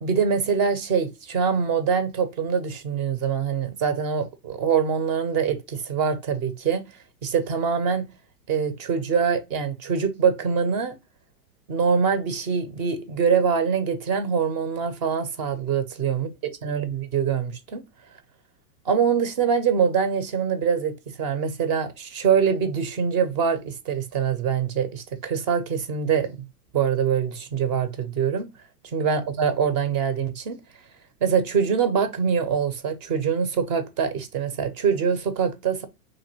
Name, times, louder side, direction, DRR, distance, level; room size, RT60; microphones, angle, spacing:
voice 1, 0.0-6.8 7.2-8.1 8.5-10.9 11.7-16.3 16.6-17.8 18.9-26.3 26.7-28.5 28.9-30.5 31.2-35.8, right 6 dB, 30° right, 0.4 m, -24 dB
3.0 x 2.5 x 2.6 m
hypercardioid pair, 115°, 47 cm